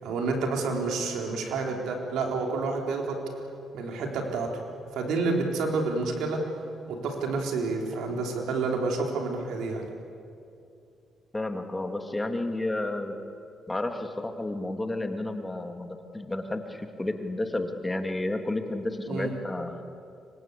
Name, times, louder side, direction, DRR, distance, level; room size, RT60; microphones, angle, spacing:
voice 1, 0.0-3.2 3.7-4.6 4.9-6.4 6.9-9.9 19.1-19.3, right 3 dB, 85° right, 1 dB, 4.0 m, -29 dB
voice 2, 11.3-13.2 13.7-15.9 16.1-19.8, left 2 dB, 15° left, 5 dB, 2.3 m, -31 dB
26.5 x 24.5 x 8.4 m, 2.6 s
cardioid pair, 90°, 0 cm